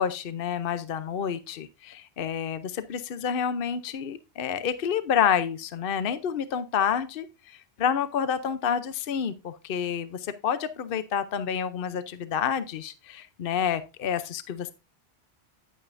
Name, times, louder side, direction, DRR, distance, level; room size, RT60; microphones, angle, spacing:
voice 1, 0.0-14.7, left 8 dB, 65° left, 12 dB, 0.9 m, -29 dB
10.5 x 8.8 x 2.5 m, 0.28 s
omnidirectional pair, 1.1 m